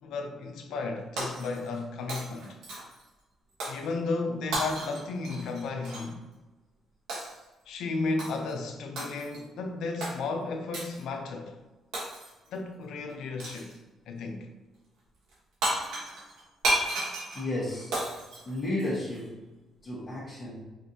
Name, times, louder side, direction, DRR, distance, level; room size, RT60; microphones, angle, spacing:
voice 1, 0.0-2.6 3.6-6.2 7.7-11.6 12.5-13.7 14.1-14.5, left 3 dB, 80° left, 0.5 m, -34 dB
Shatter, 1.2-1.8 2.1-3.0 3.6-3.9 4.5-6.1 7.1-7.4 8.2-8.5 9.0-9.4 10.0-10.2 10.7-11.0 11.9-12.5 13.4-13.8 15.3-15.4 15.6-19.2, right 1 dB, 90° right, 1.3 m, -33 dB
voice 2, 17.3-18.0 18.4-19.4 19.8-20.8, left 1 dB, 40° left, 1.2 m, -33 dB
5.1 x 2.6 x 2.8 m
cardioid pair, 90°, 0 cm